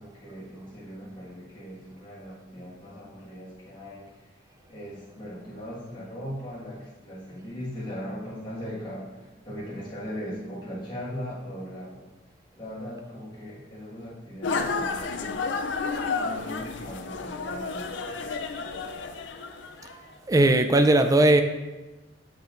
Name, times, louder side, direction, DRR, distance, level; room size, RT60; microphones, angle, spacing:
voice 1, 0.0-4.1 4.7-12.1 12.5-15.4 16.2-18.0, equal, 25° left, -10 dB, 1.6 m, -39 dB
sound 1, 14.4-20.0, left 4 dB, 70° left, 0.4 m, -31 dB
voice 2, 20.3-21.4, right 2 dB, 20° right, 8 dB, 0.3 m, -18 dB
6.9 x 5.4 x 2.5 m, 1.1 s
head